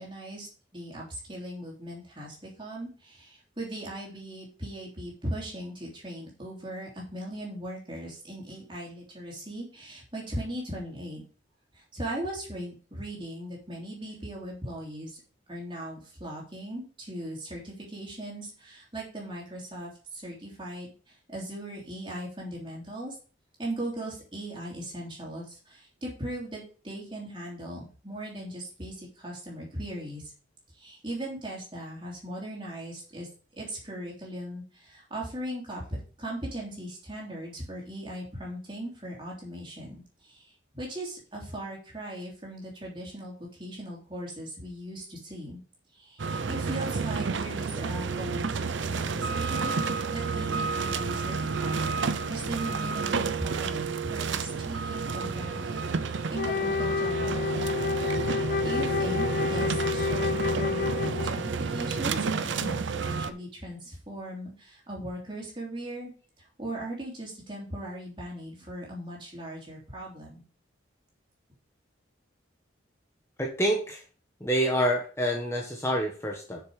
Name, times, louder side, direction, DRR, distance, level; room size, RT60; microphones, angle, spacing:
voice 1, 0.0-11.2 11.7-15.2 15.5-23.2 23.6-30.3 30.8-33.3 33.6-45.6 45.9-51.9 52.3-57.7 58.3-66.1 66.6-70.4, right 1 dB, 25° right, -3 dB, 3.4 m, -39 dB
sound 1, 46.2-63.3, right 5 dB, 75° right, 0.6 m, -30 dB
Wind instrument woodwind instrument, 56.3-61.5, left 6 dB, 50° left, 0.4 m, -29 dB
voice 2, 73.4-74.0 74.4-76.6, equal, 15° left, -1 dB, 1.2 m, -27 dB
7.3 x 6.8 x 4.9 m, 0.39 s
head